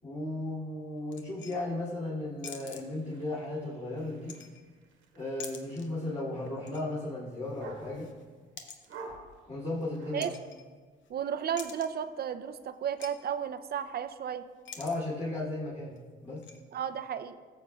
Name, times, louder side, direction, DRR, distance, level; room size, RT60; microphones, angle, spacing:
voice 1, 0.0-4.4 5.1-8.1 9.5-10.3 14.8-16.4, left 2 dB, 30° left, -10 dB, 2.8 m, -35 dB
sound 1, 1.1-1.9 2.4-3.3 4.0-4.9 5.2-6.0 6.3-6.9 7.2-11.1 11.4-12.1 12.5-12.6 12.9-13.1 13.4-13.5 13.8-14.1 14.5-15.0 15.3-15.4 16.0-16.6, left 6 dB, 70° left, 0.9 m, -48 dB
sound 2, 2.7-8.3 8.8-10.3, right 3 dB, 80° right, 1.3 m, -50 dB
voice 2, 11.1-14.4 16.7-17.3, right 8 dB, 50° right, 11 dB, 0.5 m, -33 dB
15.0 x 7.2 x 2.3 m, 1.5 s
cardioid pair, 90°, 20 cm